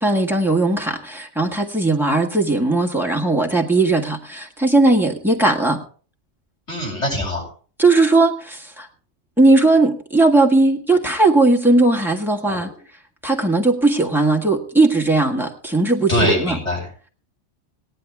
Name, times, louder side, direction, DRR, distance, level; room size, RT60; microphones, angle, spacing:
voice 1, 0.0-5.8 7.8-8.9 9.4-12.7 13.2-16.6, right 2 dB, ahead, 1 dB, 1.6 m, -17 dB
voice 2, 6.7-7.5 12.4-12.7 16.1-17.1, equal, 70° left, -3 dB, 8.2 m, -23 dB
17.5 x 10.5 x 3.5 m, 0.41 s
omnidirectional pair, 1.3 m